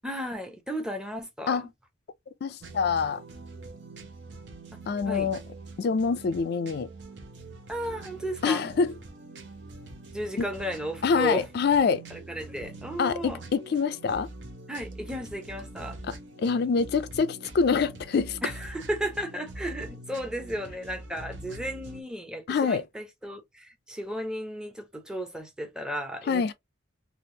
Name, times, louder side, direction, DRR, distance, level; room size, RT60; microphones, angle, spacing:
voice 1, 0.0-1.7 5.1-5.3 7.7-8.7 10.1-11.5 12.1-13.4 14.7-16.0 18.4-26.5, equal, 5° right, 0.7 m, -34 dB
voice 2, 2.4-3.2 4.9-5.4 5.8-6.9 8.4-8.9 11.0-12.0 13.0-14.3 16.1-18.4 22.5-22.8 26.3-26.5, left 5 dB, 55° left, 0.3 m, -25 dB
sound 1, 2.6-22.0, right 2 dB, 60° right, 0.9 m, -44 dB
3.3 x 2.4 x 2.7 m
head